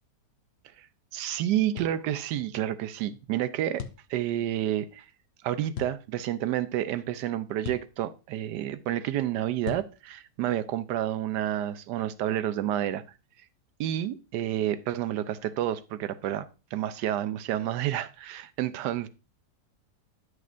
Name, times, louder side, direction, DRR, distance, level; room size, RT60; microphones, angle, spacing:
voice 1, 1.1-3.8 4.1-5.0 5.4-13.0 13.8-19.1, right 12 dB, 85° right, 1.2 m, -30 dB
sound 1, 1.8-2.0 3.8-4.1 5.7-6.0 7.6-7.9 9.6-9.9, left 9 dB, 70° left, 0.6 m, -37 dB
10.5 x 6.3 x 2.5 m
omnidirectional pair, 1.8 m